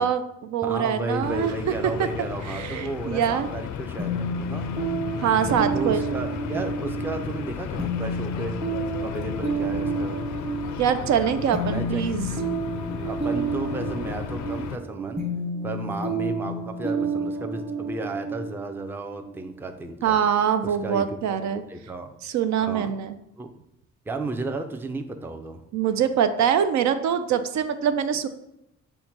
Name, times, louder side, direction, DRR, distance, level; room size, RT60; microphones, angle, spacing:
voice 1, 0.0-1.5 2.0-2.1 2.4-3.5 5.2-6.0 10.8-12.3 20.0-21.6 22.2-23.2 25.7-28.3, right 8 dB, 65° right, 10 dB, 0.4 m, -24 dB
voice 2, 0.6-4.7 5.7-8.6 9.0-10.2 11.7-12.0 12.9-15.2 15.6-20.2 20.6-22.1 22.6-22.9 23.4-23.5 24.1-25.6, right 2 dB, 5° right, 6 dB, 0.4 m, -33 dB
sound 1, 1.2-14.8, left 7 dB, 70° left, 0.5 m, -34 dB
Light Soundscape, 4.0-19.6, right 2 dB, 20° right, 1.1 m, -30 dB
5.6 x 2.1 x 4.4 m, 0.82 s
cardioid pair, 90°, 30 cm